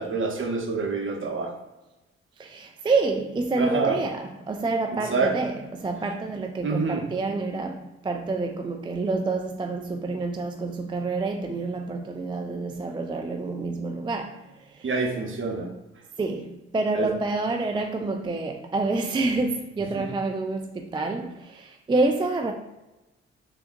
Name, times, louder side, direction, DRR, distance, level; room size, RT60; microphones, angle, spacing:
voice 1, 0.0-1.5 3.6-4.0 5.1-5.3 6.6-7.0 14.8-15.7 16.9-17.1 19.9-20.1, right 4 dB, 40° right, 0.8 m, -27 dB
voice 2, 2.4-14.9 16.2-22.5, right 3 dB, 15° right, 0.3 m, -28 dB
3.4 x 2.8 x 2.6 m
hypercardioid pair, 40°, 30 cm